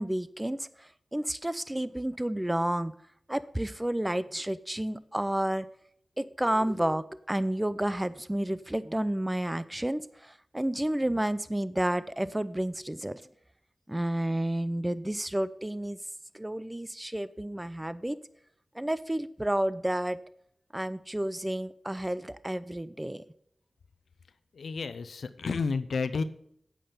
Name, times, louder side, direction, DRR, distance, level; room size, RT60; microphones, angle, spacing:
voice 1, 0.0-2.9 3.3-5.7 6.2-13.2 13.9-16.0 16.3-18.2 18.7-20.2 20.7-23.2, right 1 dB, 15° right, 15 dB, 0.5 m, -31 dB
voice 2, 24.5-26.2, left 4 dB, 85° left, 12 dB, 0.6 m, -31 dB
8.9 x 8.7 x 5.5 m, 0.69 s
cardioid pair, 55°, 0 cm